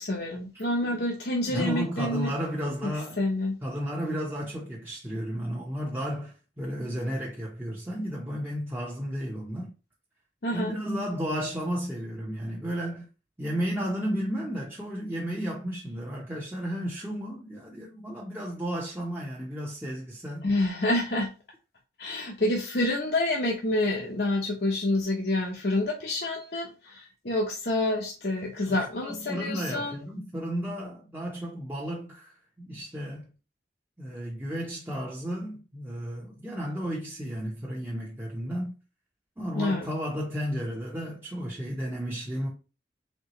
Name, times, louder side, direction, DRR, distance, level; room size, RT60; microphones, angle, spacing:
voice 1, 0.0-2.3 2.8-2.9 3.2-3.6 10.4-10.8 20.4-21.3 22.0-30.0 39.6-39.9, left 1 dB, 65° left, 0.9 m, -28 dB
voice 2, 0.5-1.1 1.4-3.2 3.6-9.7 10.5-13.1 13.4-20.5 28.7-28.8 29.0-33.3 34.0-38.8 39.4-42.5, equal, 10° right, 0.9 m, -33 dB
4.5 x 3.6 x 3.0 m
head